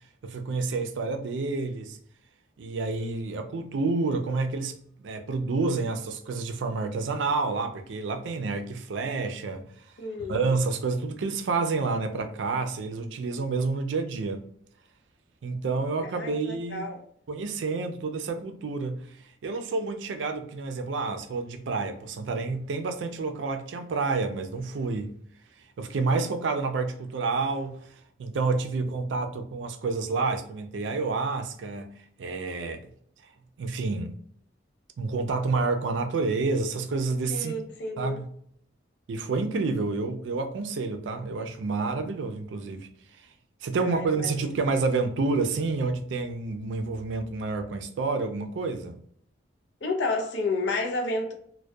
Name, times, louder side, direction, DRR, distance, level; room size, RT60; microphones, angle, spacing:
voice 1, 0.2-2.0 2.6-9.6 10.3-14.4 15.4-16.9 17.3-19.0 19.4-25.1 25.8-27.8 28.2-31.9 32.2-32.8 33.6-34.1 35.0-37.5 38.0-38.3 39.1-42.9 43.6-49.0, right 3 dB, 85° right, 0.4 m, -29 dB
voice 2, 10.0-10.5 16.0-17.0 37.3-38.2 43.8-44.3 49.8-51.3, left 2 dB, 75° left, 0.5 m, -31 dB
2.2 x 2.1 x 2.6 m
head